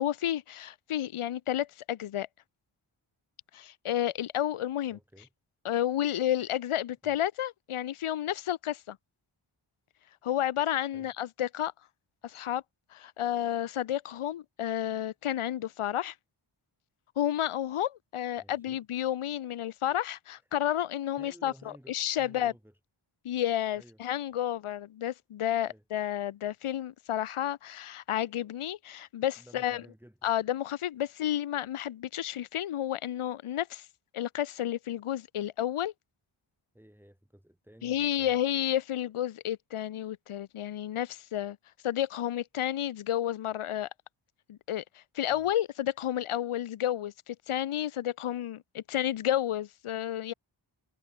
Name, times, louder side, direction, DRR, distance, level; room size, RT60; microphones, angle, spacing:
voice 1, 0.0-2.3 3.5-5.0 5.6-9.0 10.2-11.7 12.2-12.6 12.9-16.1 17.2-22.5 23.2-29.8 30.2-33.9 34.1-35.9 37.8-41.6 41.8-43.9 44.5-50.3, left 11 dB, 85° left, 0.7 m, -31 dB
voice 2, 4.9-5.3 7.0-7.2 10.9-11.1 18.4-18.8 21.2-22.8 23.7-24.0 25.7-25.8 29.4-30.2 36.7-38.4 45.3-45.5, equal, 5° right, 3.9 m, -55 dB
wide cardioid pair, 70°, 49 cm